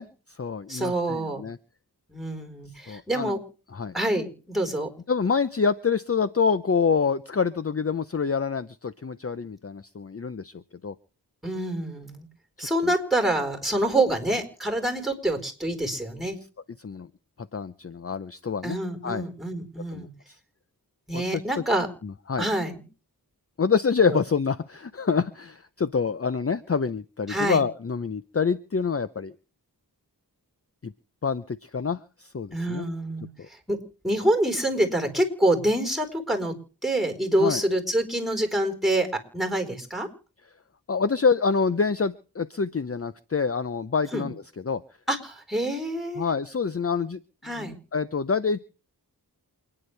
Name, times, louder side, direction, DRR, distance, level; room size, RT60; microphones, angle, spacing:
voice 1, 0.0-1.6 2.9-3.3 3.7-3.9 5.1-10.9 16.8-17.1 17.5-18.8 19.0-19.2 19.9-20.4 21.1-21.4 22.0-22.5 23.6-29.3 30.8-30.9 31.2-32.8 33.4-33.5 37.4-37.6 40.9-44.8 46.2-47.2 47.6-48.6, left 5 dB, 35° left, 13 dB, 0.7 m, -26 dB
voice 2, 0.7-1.4 2.1-3.4 3.9-4.9 11.4-12.3 12.6-16.4 18.6-20.1 21.1-21.9 22.4-22.8 24.1-24.2 27.3-27.6 32.5-36.5 36.8-40.1 44.1-44.3 45.1-46.3 47.4-47.8, right 1 dB, ahead, 6 dB, 4.3 m, -26 dB
28.5 x 10.0 x 3.3 m, 0.38 s
wide cardioid pair, 60°, 39 cm